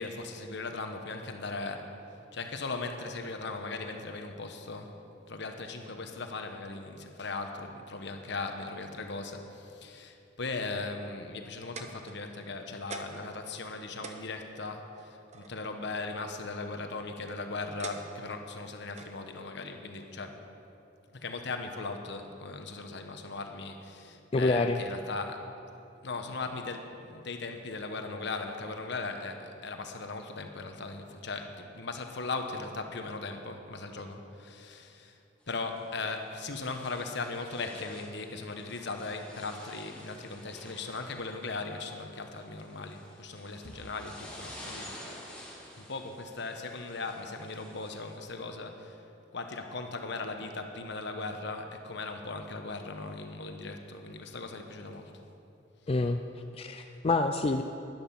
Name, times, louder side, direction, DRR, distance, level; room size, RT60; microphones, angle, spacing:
voice 1, 0.0-2.0 2.3-5.0 5.3-20.4 21.1-25.5 26.0-35.2 35.5-44.9 45.7-49.1 49.3-55.1, left 3 dB, 65° left, 5 dB, 1.1 m, -38 dB
sound 1, 11.4-12.5 12.9-13.3 13.7-13.8 14.0-15.5 16.6-17.0 17.8-18.4 19.0-19.2 20.0-20.1, right 4 dB, 35° right, 0.9 m, -44 dB
voice 2, 24.3-24.8 55.9-56.2 56.5-57.6, left 3 dB, 30° left, 6 dB, 0.4 m, -27 dB
sound 2, 35.4-48.2, left 1 dB, 5° left, 2.3 m, -50 dB
12.5 x 11.0 x 5.9 m, 2.7 s
head